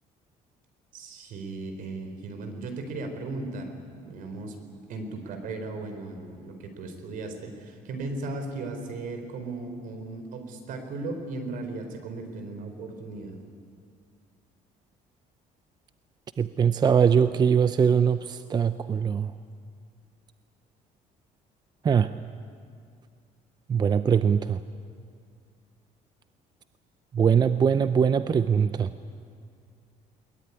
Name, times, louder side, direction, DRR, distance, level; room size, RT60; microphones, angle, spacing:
voice 1, 0.9-3.7 4.0-4.6 4.9-13.4, right 3 dB, 65° right, 6 dB, 4.0 m, -36 dB
voice 2, 16.4-19.3 21.8-22.1 23.7-24.6 27.1-28.9, right 7 dB, 30° right, 12 dB, 0.6 m, -22 dB
22.0 x 21.0 x 9.8 m, 2.3 s
cardioid pair, 135°, 15 cm